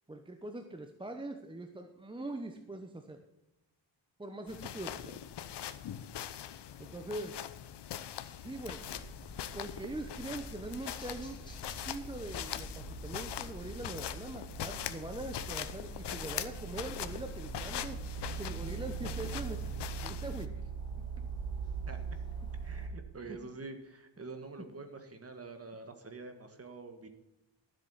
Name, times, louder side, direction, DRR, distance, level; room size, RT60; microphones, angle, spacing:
voice 1, 0.1-3.2 4.2-5.2 6.8-7.4 8.4-8.8 9.5-11.4 11.8-19.6 20.0-20.5 23.3-23.4, right 2 dB, 10° right, 5 dB, 0.9 m, -42 dB
sound 1, 4.5-20.5, left 10 dB, 60° left, 0.9 m, -42 dB
sound 2, 8.5-22.9, right 5 dB, 10° left, 3.4 m, -42 dB
voice 2, 22.6-27.1, right 3 dB, 30° right, 7 dB, 1.7 m, -46 dB
13.0 x 7.9 x 5.6 m, 0.93 s
cardioid pair, 130°, 46 cm